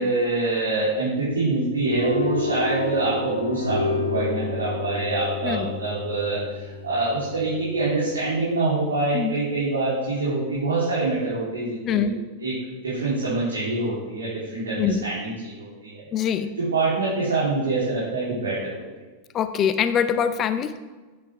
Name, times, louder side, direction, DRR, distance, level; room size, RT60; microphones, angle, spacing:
voice 1, 0.0-12.6 12.8-16.0 16.6-18.8, right 3 dB, 70° right, -9 dB, 3.7 m, -25 dB
sound 1, 1.8-8.1, left 2 dB, 90° right, 1.2 m, -29 dB
voice 2, 16.1-16.5 19.3-20.8, left 8 dB, 30° left, 11 dB, 0.7 m, -23 dB
10.0 x 9.6 x 3.6 m, 1.3 s
figure-of-eight pair, 90°, 0 cm